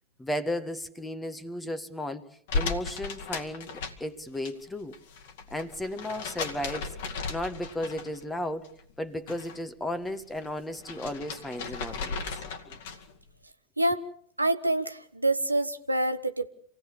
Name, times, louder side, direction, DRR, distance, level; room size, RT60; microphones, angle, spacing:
voice 1, 0.2-2.2 2.5-3.7 4.0-4.9 5.5-6.9 7.3-8.7 9.0-12.2 12.7-12.8, left 1 dB, 10° left, 11 dB, 1.4 m, -34 dB
sound 1, 2.5-4.5 4.8-8.3 8.6-9.6 9.9-13.2, left 4 dB, 55° left, 2.2 m, -36 dB
voice 2, 14.4-16.5, right 1 dB, 85° right, 10 dB, 1.0 m, -26 dB
27.0 x 18.0 x 7.0 m, 0.63 s
figure-of-eight pair, 90°, 0 cm